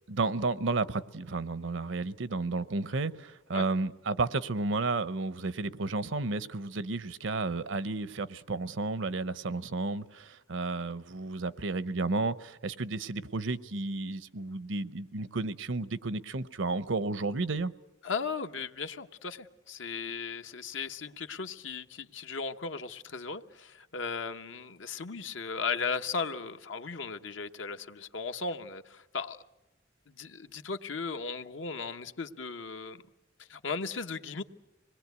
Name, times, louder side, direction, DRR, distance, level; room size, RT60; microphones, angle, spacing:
voice 1, 0.1-17.7, right 3 dB, 80° right, 15 dB, 0.8 m, -32 dB
voice 2, 18.0-29.4 30.1-33.0 33.4-34.4, left 5 dB, 80° left, 8 dB, 1.0 m, -36 dB
26.0 x 20.5 x 8.2 m, 0.95 s
head